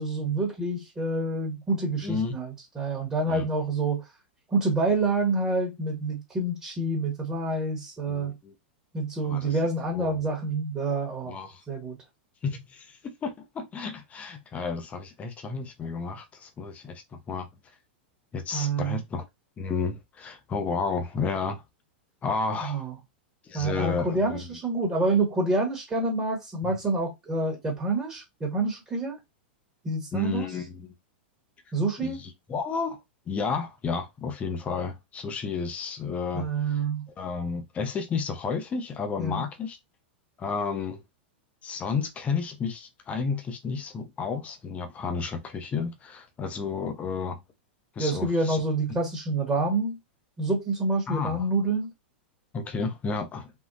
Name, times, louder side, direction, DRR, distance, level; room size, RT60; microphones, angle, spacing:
voice 1, 0.0-4.0 4.5-8.3 8.9-12.0 18.5-19.0 22.6-22.9 23.5-29.2 29.8-30.5 31.7-32.2 36.3-37.1 39.2-39.4 48.0-50.0 50.4-51.9, right 2 dB, 15° right, 1.2 m, -27 dB
voice 2, 2.0-2.4 3.3-3.5 8.1-8.5 9.2-9.6 9.8-10.2 11.3-11.6 12.4-17.5 18.3-19.2 19.6-21.6 22.2-22.9 23.4-24.6 26.6-26.8 30.1-31.0 32.0-33.0 33.3-36.8 37.2-39.8 40.4-41.0 41.6-47.4 48.0-48.6 51.1-51.5 52.5-53.5, left 5 dB, 25° left, 0.7 m, -32 dB
3.6 x 2.3 x 2.6 m
hypercardioid pair, 115°, 6 cm